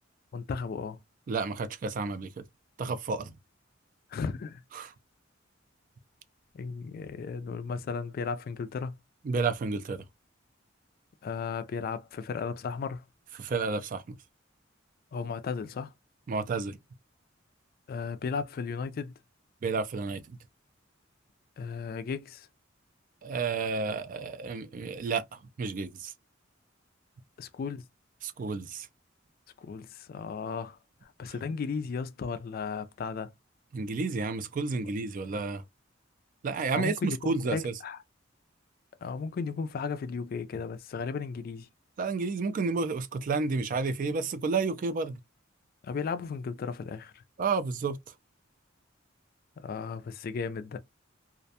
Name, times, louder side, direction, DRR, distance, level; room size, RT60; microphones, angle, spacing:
voice 1, 0.3-1.0 4.1-4.6 6.5-8.9 11.2-13.0 15.1-15.9 17.9-19.1 21.6-22.5 27.4-27.8 29.6-33.3 36.7-38.0 39.0-41.7 45.8-47.2 49.6-50.8, left 5 dB, 50° left, 0.3 m, -35 dB
voice 2, 1.3-2.4 2.8-3.3 4.8-4.9 9.3-10.0 13.4-14.2 16.3-16.8 19.6-20.4 23.2-26.1 28.2-28.9 33.7-35.6 36.4-37.7 42.0-45.2 47.4-48.0, right 4 dB, 45° right, 0.3 m, -31 dB
2.4 x 2.2 x 2.6 m
head